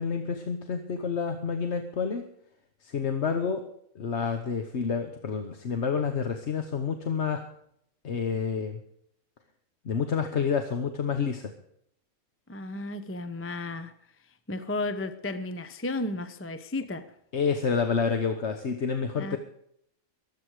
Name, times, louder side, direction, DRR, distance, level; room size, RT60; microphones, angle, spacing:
voice 1, 0.0-2.3 2.8-3.6 3.9-7.4 8.0-8.8 9.8-11.5 17.3-19.4, left 6 dB, 55° left, 6 dB, 1.3 m, -29 dB
voice 2, 12.5-13.9 14.5-17.1 19.2-19.4, left 2 dB, 15° left, 11 dB, 0.6 m, -33 dB
23.0 x 8.4 x 4.8 m, 0.71 s
omnidirectional pair, 1.4 m